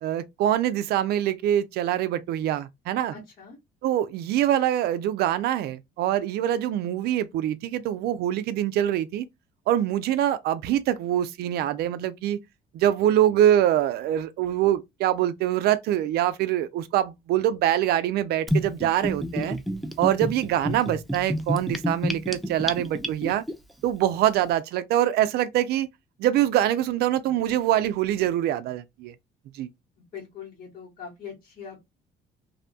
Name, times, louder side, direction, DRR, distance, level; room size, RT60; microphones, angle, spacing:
voice 1, 0.0-3.1 3.8-9.3 9.7-12.4 12.7-19.6 20.0-23.4 23.8-25.9 26.2-29.1 29.6-29.7, right 12 dB, 70° right, 0.4 m, -24 dB
voice 2, 3.1-3.6 30.1-31.8, left 6 dB, 55° left, 1.4 m, -41 dB
Gurgling / Bathtub (filling or washing), 18.5-23.5, equal, ahead, 0.3 m, -28 dB
2.7 x 2.1 x 2.6 m
cardioid pair, 110°, 17 cm